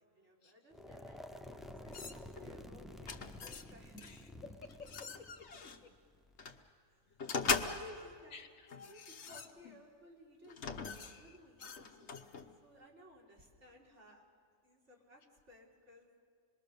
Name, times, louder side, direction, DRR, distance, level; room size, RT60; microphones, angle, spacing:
voice 1, 0.0-4.0 7.1-8.4 8.8-10.7 10.9-14.3 14.6-16.1, equal, 55° right, -2 dB, 3.8 m, -58 dB
sound 1, 0.7-6.7, left 1 dB, ahead, 0.4 m, -51 dB
sound 2, 1.9-2.5 3.0-3.7 4.0-4.2 4.7-5.8 6.4-6.6 7.2-8.1 8.7-9.9 10.5-12.5, left 5 dB, 55° left, 1.3 m, -40 dB
voice 2, 3.9-5.5 5.8-5.9 8.3-8.7, left 4 dB, 70° left, 8 dB, 1.6 m, -53 dB
26.0 x 21.5 x 6.9 m, 2.1 s
omnidirectional pair, 1.4 m